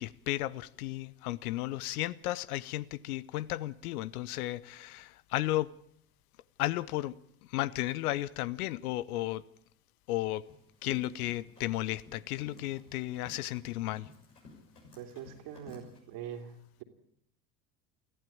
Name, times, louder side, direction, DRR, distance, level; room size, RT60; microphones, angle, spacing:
voice 1, 0.0-5.7 6.6-7.2 7.5-9.4 10.1-10.5 10.8-14.1, left 16 dB, 70° left, 0.9 m, -34 dB
Run, 10.4-16.0, left 2 dB, 85° left, 7.2 m, -55 dB
voice 2, 15.0-16.8, right 8 dB, 60° right, 3.3 m, -43 dB
24.5 x 15.0 x 8.7 m
figure-of-eight pair, 65°, 46 cm